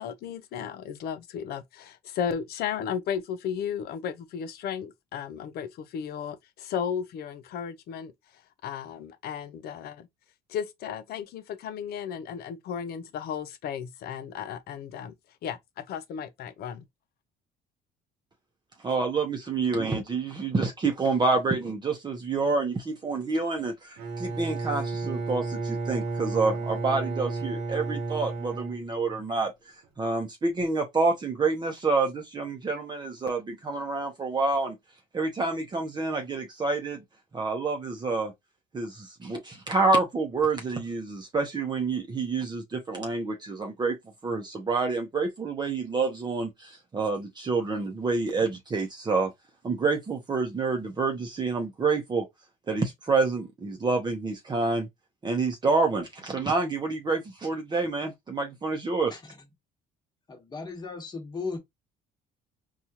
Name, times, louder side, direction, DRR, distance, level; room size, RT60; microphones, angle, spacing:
voice 1, 0.0-10.1 10.5-15.1 15.4-16.8, left 8 dB, 65° left, 0.7 m, -34 dB
voice 2, 18.8-29.5 30.0-34.8 35.1-37.0 37.3-38.3 38.7-44.0 44.2-49.3 49.6-52.3 52.7-54.9 55.2-59.2, right 3 dB, 25° right, 0.7 m, -28 dB
Bowed string instrument, 24.0-29.5, right 3 dB, 80° right, 0.9 m, -32 dB
voice 3, 60.3-61.6, left 4 dB, 25° left, 1.2 m, -36 dB
4.2 x 2.4 x 2.8 m
cardioid pair, 110°, 17 cm